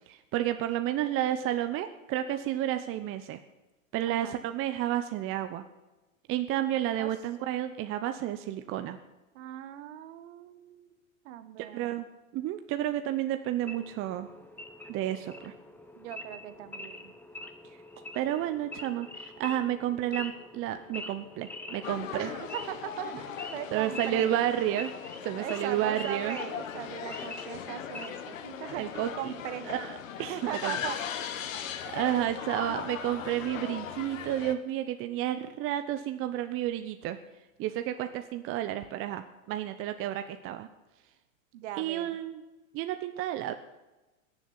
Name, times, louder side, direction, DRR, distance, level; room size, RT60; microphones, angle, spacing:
voice 1, 0.0-3.4 3.9-5.6 6.3-9.0 11.6-12.1 12.3-14.3 14.9-15.5 18.0-22.3 23.7-24.9 25.2-26.4 28.4-29.3 29.7-30.7 31.5-37.2 37.6-40.7 41.8-42.4 42.7-43.5, right 12 dB, 30° right, 9 dB, 0.8 m, -31 dB
voice 2, 4.1-4.4 7.0-7.1 9.3-10.9 11.2-12.0 16.0-17.1 22.1-24.3 25.4-28.9 29.1-29.7 30.2-31.0 41.5-42.2, right 11 dB, 55° right, 12 dB, 1.5 m, -39 dB
Wild animals / Idling, 13.6-28.4, left 1 dB, 5° left, 1.2 m, -45 dB
sound 1, 21.8-34.5, left 8 dB, 70° left, 1.7 m, -39 dB
18.0 x 7.3 x 9.7 m, 1.1 s
hypercardioid pair, 120°, 41 cm